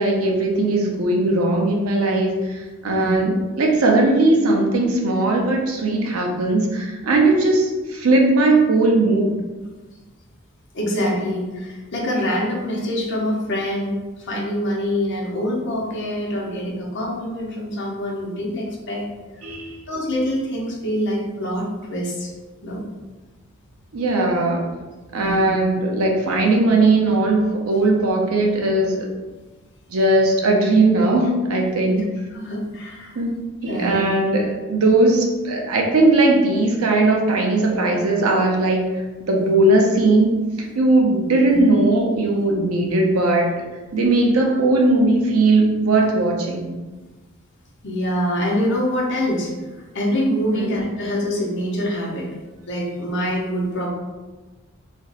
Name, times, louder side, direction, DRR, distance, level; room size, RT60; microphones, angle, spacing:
voice 1, 0.0-9.3 19.4-19.8 23.9-24.7 25.1-29.1 29.9-32.1 33.1-33.3 33.6-38.9 39.3-40.4 40.8-43.6 43.9-46.7 50.5-50.8, right 2 dB, 85° right, 0 dB, 0.6 m, -18 dB
voice 2, 10.7-19.0 19.9-22.3 22.6-22.8 25.1-25.5 32.3-33.2 33.7-34.0 41.1-41.6 47.8-52.3 52.7-53.9, equal, 60° left, -2 dB, 0.7 m, -25 dB
2.5 x 2.0 x 3.9 m, 1.2 s
head